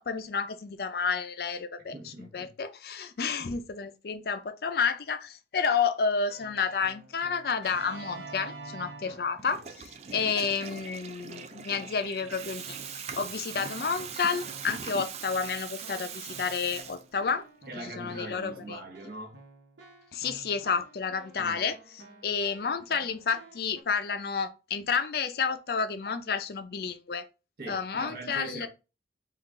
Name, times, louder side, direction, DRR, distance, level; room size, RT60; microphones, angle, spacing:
voice 1, 0.0-17.4 17.8-18.8 20.1-27.3 27.7-28.7, left 5 dB, 55° left, 0.4 m, -30 dB
voice 2, 1.9-2.5 3.4-3.5 9.0-9.2 10.2-10.3 17.7-19.4 21.4-21.6 27.6-28.7, right 2 dB, 55° right, 0.9 m, -42 dB
Keyboard (musical), 6.3-9.9 10.4-10.9 11.3-23.8, right 2 dB, 85° right, 0.9 m, -50 dB
Water tap faucet / Toilet flush, 9.4-17.4, right 7 dB, 35° right, 0.3 m, -41 dB
3.7 x 2.4 x 3.6 m
head